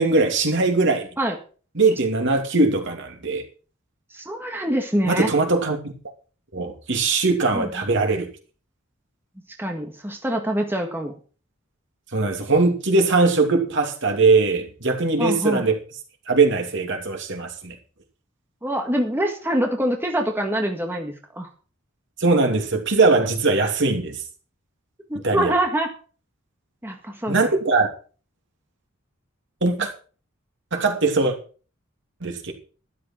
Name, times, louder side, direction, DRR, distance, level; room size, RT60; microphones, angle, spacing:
voice 1, 0.0-1.1 1.8-3.4 5.0-5.8 6.5-8.3 12.1-15.8 16.3-17.7 22.2-24.2 25.2-25.5 27.3-27.9 29.6-29.9 30.7-31.4 32.2-32.5, right 3 dB, 60° right, 2.8 m, -20 dB
voice 2, 4.1-5.3 7.5-7.7 9.6-11.1 15.2-15.7 18.6-21.5 25.1-25.9 26.8-27.4, right 1 dB, 10° right, 1.8 m, -25 dB
12.5 x 11.5 x 4.6 m
head